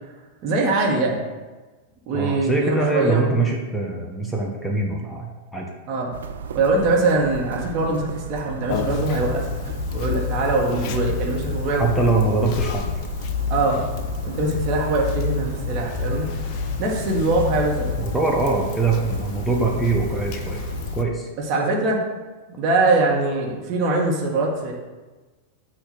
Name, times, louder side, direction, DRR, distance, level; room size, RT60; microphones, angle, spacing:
voice 1, 0.4-1.2 2.1-3.3 5.9-6.2 6.5-9.5 9.9-11.9 13.5-16.3 16.8-17.9 21.4-22.0 22.6-24.7, right 2 dB, 40° right, -2 dB, 1.5 m, -22 dB
voice 2, 2.1-5.7 11.8-12.9 18.0-20.6 20.9-21.3, right 3 dB, 10° left, -1 dB, 1.0 m, -23 dB
sound 1, 6.1-21.0, right 7 dB, 65° right, 0.4 m, -35 dB
Conversation, 8.7-21.0, left 6 dB, 40° left, 0.5 m, -29 dB
8.1 x 2.9 x 6.2 m, 1.2 s
figure-of-eight pair, 90°, 0 cm